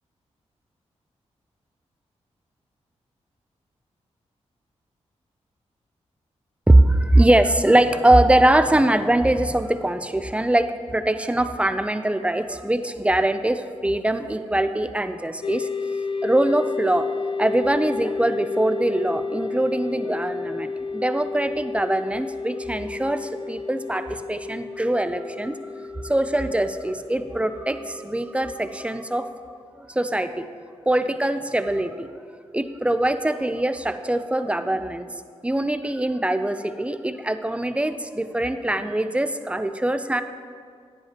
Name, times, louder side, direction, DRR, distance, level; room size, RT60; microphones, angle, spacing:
voice 1, 6.7-15.7 16.2-17.1 17.4-25.6 26.0-29.3 29.8-30.5 30.9-32.1 32.5-35.1 35.4-40.2, right 1 dB, 10° right, 10 dB, 0.5 m, -22 dB
sound 1, 15.4-29.3, left 4 dB, 45° left, 0.5 m, -31 dB
10.5 x 10.0 x 2.9 m, 2.1 s
cardioid pair, 70°, 12 cm